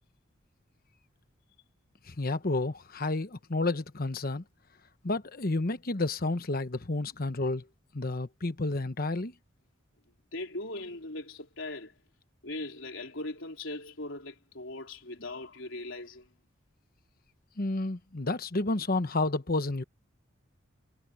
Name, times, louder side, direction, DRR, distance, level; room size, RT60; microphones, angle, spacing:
voice 1, 2.1-4.4 5.0-7.6 7.9-9.3 17.6-19.8, left 2 dB, 50° left, 1.1 m, -30 dB
voice 2, 10.3-11.9 12.4-16.3, left 2 dB, 75° left, 3.7 m, -39 dB
head